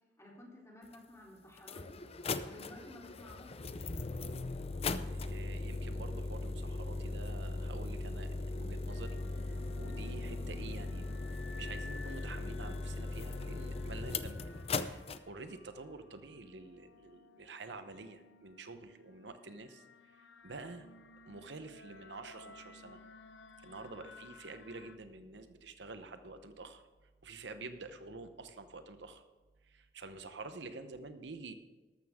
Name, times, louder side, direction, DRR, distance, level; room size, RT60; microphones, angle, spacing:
voice 1, 0.2-3.8, left 1 dB, 15° left, -3 dB, 3.4 m, -54 dB
sound 1, 0.9-1.0 1.6-15.2, left 3 dB, 35° left, 0.6 m, -39 dB
voice 2, 5.1-20.9 21.2-23.0 23.6-26.8 27.2-29.2 29.6-31.5, right 3 dB, 80° right, 9 dB, 0.9 m, -48 dB
sound 2, 8.9-25.0, left 3 dB, 90° left, 0.7 m, -55 dB
13.5 x 12.5 x 3.6 m, 1.3 s
head